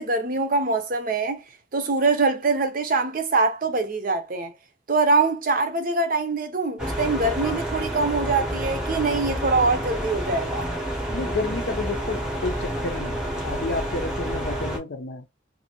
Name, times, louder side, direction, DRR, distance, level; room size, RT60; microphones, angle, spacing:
voice 1, 0.0-1.4 1.7-4.5 4.9-10.7, right 3 dB, 45° right, 0.6 m, -23 dB
sound 1, 6.8-14.8, right 1 dB, 5° right, 0.8 m, -29 dB
voice 2, 11.1-15.2, left 3 dB, 55° left, 0.5 m, -31 dB
2.6 x 2.5 x 2.8 m
head